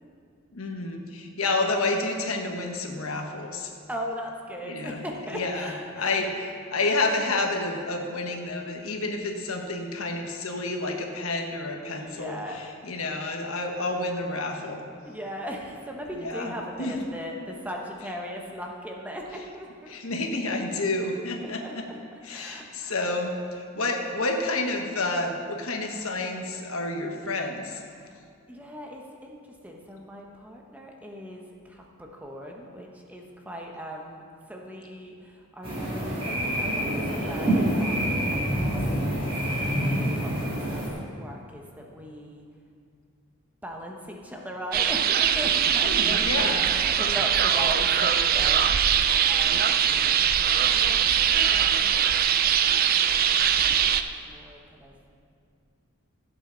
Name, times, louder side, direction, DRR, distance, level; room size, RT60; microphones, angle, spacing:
voice 1, 0.5-3.7 4.7-5.0 5.3-14.8 16.2-16.5 16.8-17.0 19.9-21.8 22.2-27.8 45.8-46.6, left 2 dB, 90° left, 3 dB, 1.2 m, -29 dB
voice 2, 3.9-6.3 12.0-12.6 15.0-20.0 21.4-23.0 27.9-28.1 28.5-38.8 39.7-42.5 43.6-51.4 51.7-52.1 52.6-52.8 53.8-55.0, equal, 5° right, 0 dB, 1.0 m, -39 dB
sound 1, 35.6-40.9, right 1 dB, 25° right, 2.4 m, -27 dB
sound 2, 44.7-54.0, right 8 dB, 45° right, 0.4 m, -22 dB
16.0 x 8.1 x 3.9 m, 2.3 s
head